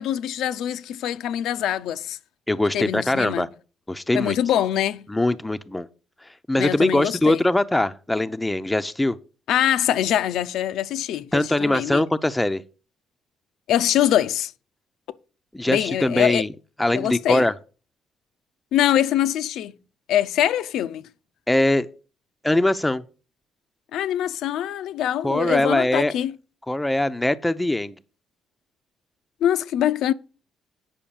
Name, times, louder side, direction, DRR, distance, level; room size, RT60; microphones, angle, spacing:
voice 1, 0.0-2.2 2.7-3.4 4.1-5.1 6.6-7.4 9.5-12.0 13.7-14.5 15.7-16.4 16.9-17.4 18.7-19.7 20.1-21.0 23.9-26.3 29.4-30.1, left 11 dB, 80° left, 0.6 m, -23 dB
voice 2, 2.5-3.5 3.9-4.4 5.1-5.9 6.5-9.2 11.3-12.6 15.5-16.5 16.8-17.5 21.5-21.9 22.4-23.0 25.2-26.1 26.7-27.9, left 1 dB, 10° left, 0.6 m, -22 dB
8.7 x 5.7 x 7.0 m
cardioid pair, 105°, 0 cm